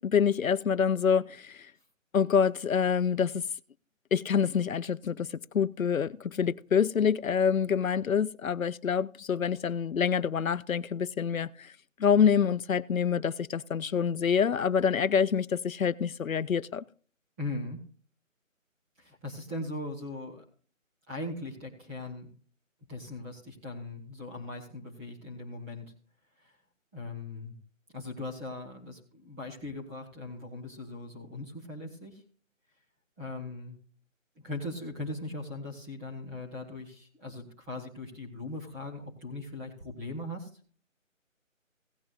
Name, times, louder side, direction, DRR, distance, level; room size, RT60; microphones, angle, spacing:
voice 1, 0.0-1.7 2.1-3.4 4.1-11.7 12.0-16.8, left 7 dB, 85° left, 0.7 m, -26 dB
voice 2, 17.4-17.8 19.0-20.4 21.1-22.3 22.9-25.9 26.4-26.5 26.9-27.5 27.9-32.2 33.2-33.8 34.3-40.5, left 2 dB, 10° right, 1.5 m, -39 dB
17.0 x 9.6 x 2.4 m
figure-of-eight pair, 165°, 40 cm